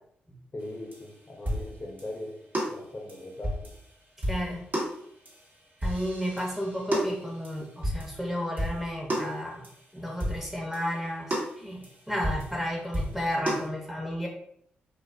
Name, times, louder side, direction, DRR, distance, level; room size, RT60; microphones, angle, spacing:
voice 1, 0.5-2.3 2.7-3.7, left 1 dB, 35° left, 0 dB, 0.6 m, -40 dB
sound 1, 0.6-0.7 0.9-1.1 1.5-2.2 2.5-3.9 4.2-5.5 5.8-8.2 8.6-8.8 9.1-9.4 9.6-9.8 10.2-10.9 11.3-12.6 12.9-13.7, equal, 40° right, 1.1 m, -32 dB
voice 2, 4.2-4.7 5.8-9.6 9.9-14.3, equal, 5° right, -2 dB, 0.9 m, -32 dB
2.4 x 2.3 x 2.2 m, 0.68 s
supercardioid pair, 45°, 5 cm